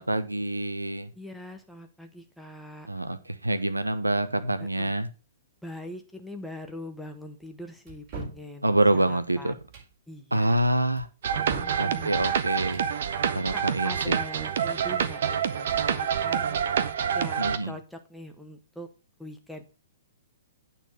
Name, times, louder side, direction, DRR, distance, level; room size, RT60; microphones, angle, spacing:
voice 1, 0.0-1.1 2.9-5.1 8.6-9.5 10.3-11.1 11.8-12.8 13.3-14.2 17.4-17.7, right 1 dB, 90° right, 12 dB, 0.9 m, -26 dB
voice 2, 1.1-2.9 4.6-4.9 5.6-9.5 10.1-10.6 11.5-12.1 13.3-16.6 17.1-18.9 19.2-19.7, left 1 dB, ahead, 4 dB, 1.3 m, -42 dB
sound 1, 7.9-8.4 9.6-9.9 11.0-11.8 12.6-12.9, right 4 dB, 40° right, 4.7 m, -39 dB
sound 2, 11.2-17.6, right 8 dB, 60° right, 0.8 m, -27 dB
9.1 x 4.2 x 6.4 m, 0.33 s
figure-of-eight pair, 115°, 0 cm